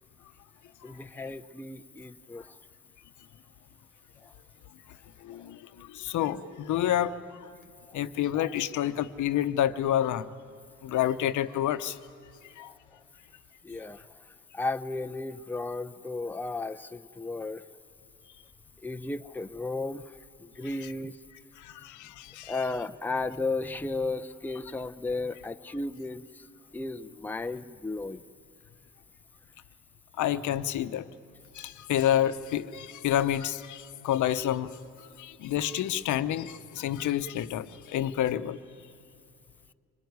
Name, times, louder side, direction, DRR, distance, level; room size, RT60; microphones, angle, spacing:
voice 1, 0.8-2.6 4.2-4.3 7.9-8.0 12.6-13.0 13.6-17.7 18.8-21.2 22.4-26.5 26.7-28.2, left 3 dB, 5° left, 9 dB, 0.6 m, -35 dB
voice 2, 5.2-7.5 7.9-10.3 10.8-12.0 12.6-12.7 21.6-22.6 30.2-31.1 31.5-34.8 35.2-38.6, left 11 dB, 75° left, 11 dB, 0.9 m, -29 dB
25.0 x 20.5 x 9.5 m, 2.3 s
cardioid pair, 90°, 30 cm